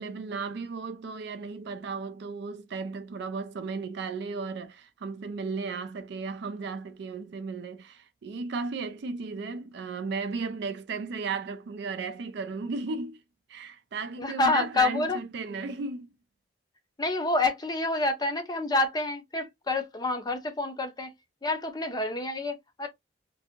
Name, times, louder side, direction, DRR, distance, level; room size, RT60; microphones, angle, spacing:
voice 1, 0.0-13.2 13.5-16.1, right 4 dB, 60° right, 0.4 m, -35 dB
voice 2, 14.2-15.2 17.0-21.1 21.4-22.9, left 2 dB, 20° left, 0.5 m, -28 dB
2.7 x 2.6 x 2.5 m
head